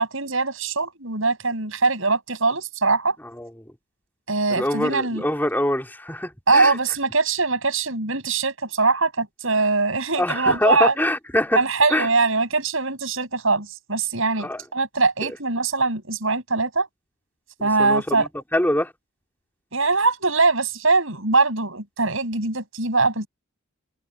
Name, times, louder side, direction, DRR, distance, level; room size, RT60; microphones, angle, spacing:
voice 1, 0.0-3.2 4.3-5.3 6.5-11.0 11.5-16.9 17.6-18.3 19.7-23.3, right 3 dB, 65° right, 7.4 m, -22 dB
voice 2, 4.5-6.8 10.2-11.6 11.9-12.1 14.4-14.6 17.6-18.9, left 1 dB, 10° left, 3.8 m, -24 dB
head